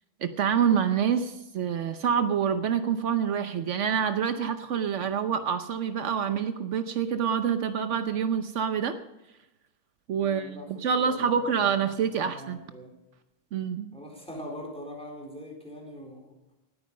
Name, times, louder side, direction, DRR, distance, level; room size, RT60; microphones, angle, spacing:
voice 1, 0.2-9.0 10.1-12.6 13.5-13.9, right 7 dB, 75° right, 9 dB, 1.1 m, -27 dB
voice 2, 10.2-10.7 10.9-12.9 13.9-16.5, equal, 5° left, 1 dB, 4.1 m, -43 dB
19.0 x 9.4 x 5.4 m, 0.96 s
omnidirectional pair, 1.3 m